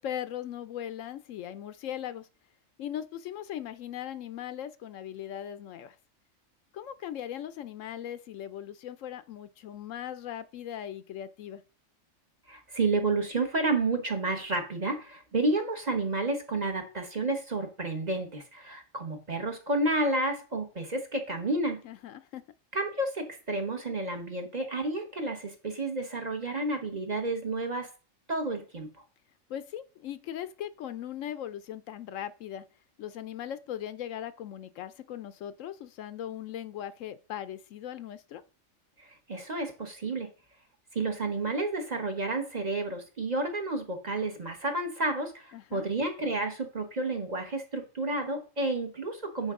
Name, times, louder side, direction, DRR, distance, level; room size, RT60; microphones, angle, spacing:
voice 1, 0.0-2.3 2.8-6.0 6.7-11.6 21.8-22.4 29.5-32.6 33.0-38.4 45.5-45.9, left 10 dB, 75° left, 0.9 m, -39 dB
voice 2, 12.5-21.8 22.7-27.9 28.3-28.9 39.0-40.3 40.9-49.5, right 2 dB, 35° right, 1.0 m, -31 dB
9.1 x 4.7 x 3.6 m
omnidirectional pair, 1.4 m